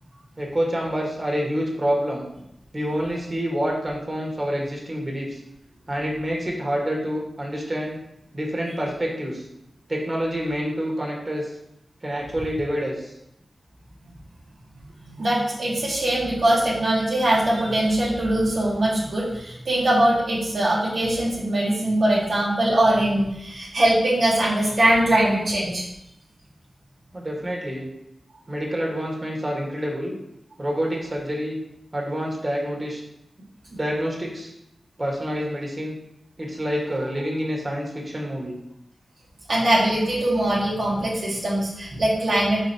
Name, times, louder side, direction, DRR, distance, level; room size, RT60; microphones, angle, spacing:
voice 1, 0.4-2.2 2.7-5.4 5.9-8.0 8.3-9.4 9.9-11.5 12.0-13.1 27.1-27.9 28.5-30.1 30.6-31.6 31.9-33.0 33.7-34.5 35.0-36.0 36.4-38.5, equal, 30° right, -1 dB, 1.7 m, -27 dB
voice 2, 15.2-25.8 39.5-42.7, right 1 dB, 75° right, -7 dB, 1.6 m, -21 dB
5.0 x 4.3 x 4.5 m, 0.81 s
wide cardioid pair, 85°, 0 cm